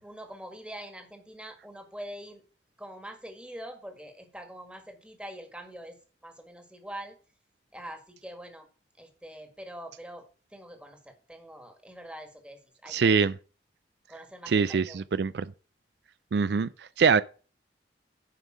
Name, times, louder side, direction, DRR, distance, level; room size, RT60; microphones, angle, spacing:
voice 1, 0.0-2.4 2.8-7.2 7.7-8.7 9.0-13.3 14.1-15.1, right 1 dB, 5° right, 1.7 m, -44 dB
voice 2, 12.9-13.3 14.5-15.5 16.3-16.7 17.0-17.2, right 5 dB, 70° right, 0.4 m, -23 dB
9.8 x 5.4 x 6.1 m
head